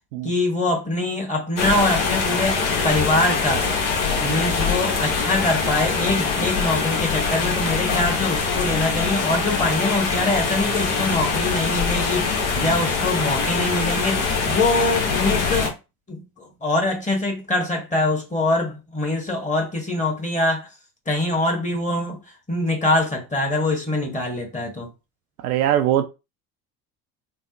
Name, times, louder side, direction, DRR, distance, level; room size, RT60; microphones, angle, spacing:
voice 1, 0.2-3.7 4.2-15.7 16.1-20.7 21.1-22.2 22.5-24.9, left 2 dB, 15° left, 1.3 m, -24 dB
sound 1, 1.6-15.7, left 5 dB, 55° left, 1.2 m, -23 dB
voice 2, 25.4-26.0, right 11 dB, 65° right, 0.5 m, -22 dB
3.4 x 2.0 x 2.9 m
figure-of-eight pair, 65°, 48 cm